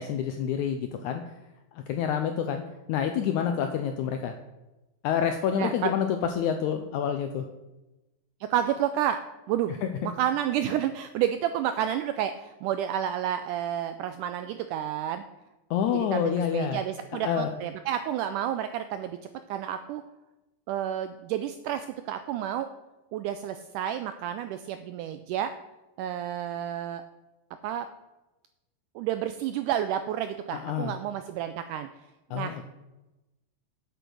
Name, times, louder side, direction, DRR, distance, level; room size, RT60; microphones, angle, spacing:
voice 1, 0.0-1.3 1.7-2.6 2.9-4.3 5.0-7.4 9.8-9.9 15.7-16.8 17.1-17.6 30.5-31.0 32.3-32.7, left 8 dB, 85° left, 6 dB, 1.7 m, -28 dB
voice 2, 5.6-5.9 8.4-9.2 9.5-9.8 10.0-15.2 15.9-19.2 19.5-20.0 20.7-22.7 23.1-25.5 26.0-27.0 27.6-27.9 29.0-31.9 32.3-32.6, right 10 dB, 85° right, 10 dB, 1.8 m, -30 dB
8.7 x 8.0 x 6.2 m, 1.0 s
omnidirectional pair, 4.1 m